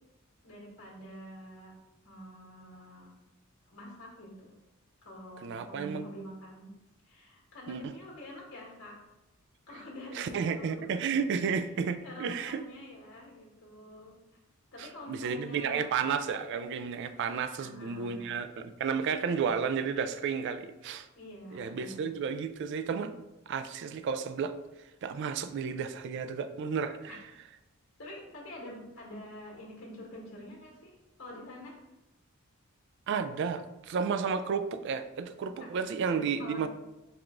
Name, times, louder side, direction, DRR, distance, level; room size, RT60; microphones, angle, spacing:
voice 1, 0.4-1.7 2.0-3.1 3.7-4.5 5.0-6.7 7.0-9.0 9.7-11.5 12.0-14.2 14.7-15.9 17.5-18.3 19.2-19.3 21.1-22.1 27.1-27.2 28.0-31.8 35.6-36.7, left 1 dB, 85° left, -3 dB, 1.4 m, -47 dB
voice 2, 5.4-6.0 7.7-7.8 10.1-12.6 14.8-21.1 21.5-23.2 23.5-24.5 25.0-27.1 33.1-36.7, right 6 dB, 60° right, 10 dB, 0.3 m, -32 dB
4.7 x 2.5 x 3.6 m, 0.99 s
head